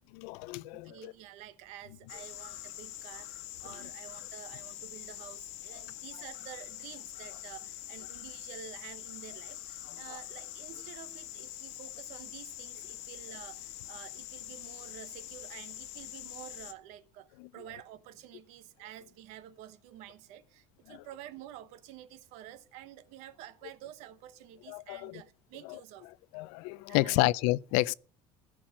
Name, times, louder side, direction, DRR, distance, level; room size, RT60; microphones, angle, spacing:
voice 1, 0.2-1.1 17.4-17.5 20.9-21.0 24.7-25.2 25.7-25.8 26.3-27.9, left 20 dB, 85° left, 0.4 m, -30 dB
voice 2, 0.7-26.1 26.9-27.3, right 12 dB, 70° right, 1.1 m, -49 dB
sound 1, 2.1-16.7, left 14 dB, 70° left, 1.2 m, -44 dB
15.5 x 6.1 x 6.0 m
cardioid pair, 170°, 12 cm